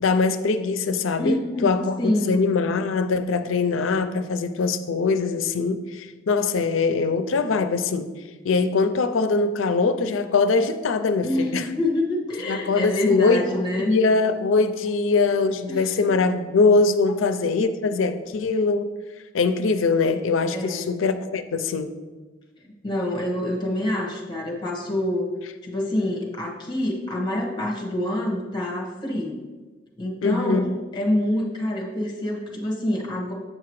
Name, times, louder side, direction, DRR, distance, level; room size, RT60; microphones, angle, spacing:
voice 1, 0.0-8.1 8.4-11.6 12.5-13.5 13.9-18.9 19.3-21.9 30.2-30.6, left 4 dB, 90° left, 10 dB, 0.5 m, -22 dB
voice 2, 1.2-2.4 11.2-14.0 15.7-15.9 20.5-20.9 22.6-25.3 25.6-29.4 30.0-33.3, left 1 dB, 25° left, 0 dB, 1.2 m, -26 dB
7.8 x 5.8 x 3.1 m, 1.3 s
head